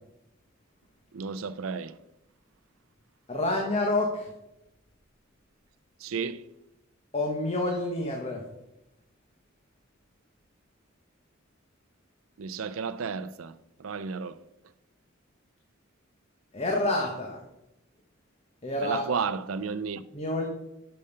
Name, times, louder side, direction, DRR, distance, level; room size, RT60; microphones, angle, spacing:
voice 1, 1.1-2.0 6.0-6.4 12.4-14.5 18.8-20.0, right 5 dB, 90° right, 0.5 m, -33 dB
voice 2, 3.3-4.3 7.1-8.4 16.5-17.4 18.6-19.1 20.1-20.5, left 2 dB, 30° left, 1.2 m, -28 dB
8.7 x 6.7 x 5.5 m
head